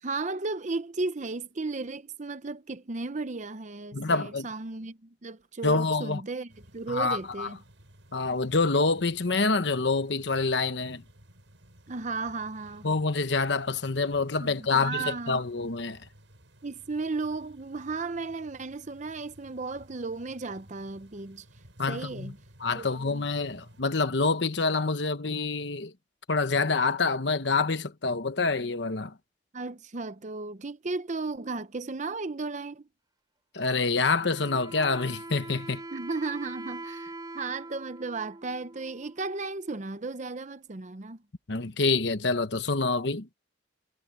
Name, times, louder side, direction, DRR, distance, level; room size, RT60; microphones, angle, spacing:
voice 1, 0.0-7.6 11.9-12.9 14.4-15.4 16.6-21.4 21.9-22.4 22.7-23.2 29.5-32.9 35.9-41.2, right 3 dB, 40° right, 0.7 m, -35 dB
voice 2, 3.9-4.5 5.6-6.2 6.9-7.5 8.1-11.0 12.8-16.1 21.8-22.3 22.6-25.9 26.3-29.1 33.5-35.8 41.5-43.3, left 3 dB, 65° left, 1.1 m, -27 dB
sound 1, 6.5-23.8, right 1 dB, 80° right, 6.5 m, -56 dB
Wind instrument woodwind instrument, 34.1-39.6, right 2 dB, 20° right, 3.9 m, -43 dB
head